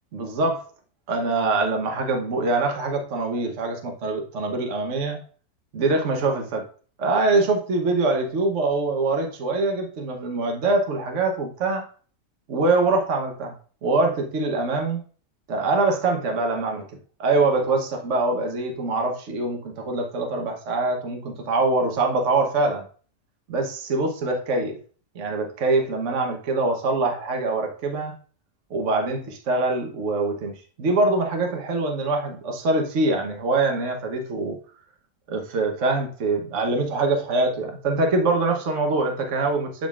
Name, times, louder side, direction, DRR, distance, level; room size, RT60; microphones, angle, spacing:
voice 1, 0.1-0.6 1.1-5.2 5.7-6.7 7.0-11.8 12.5-13.5 13.8-15.0 15.5-16.9 17.2-22.8 23.5-24.8 25.1-28.2 28.7-34.6 35.3-39.9, right 3 dB, 55° right, 3 dB, 1.3 m, -24 dB
10.0 x 3.9 x 2.4 m, 0.41 s
omnidirectional pair, 1.6 m